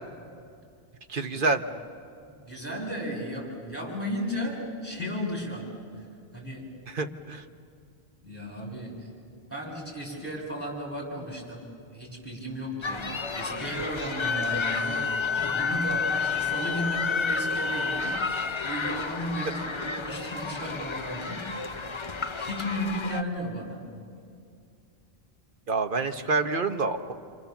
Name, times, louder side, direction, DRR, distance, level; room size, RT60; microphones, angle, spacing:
voice 1, 1.1-1.6 6.9-7.4 25.7-27.1, right 3 dB, 55° right, 7 dB, 1.2 m, -27 dB
voice 2, 2.4-5.7 6.0-6.1 6.3-6.6 8.2-9.1 9.5-11.6 11.9-21.8 22.3-23.8, equal, 15° right, -3 dB, 6.5 m, -35 dB
sound 1, 12.8-23.2, left 4 dB, 35° left, 0.7 m, -33 dB
Wind instrument woodwind instrument, 14.2-18.2, left 5 dB, 65° left, 1.4 m, -29 dB
28.5 x 26.0 x 7.1 m, 2.4 s
omnidirectional pair, 1.0 m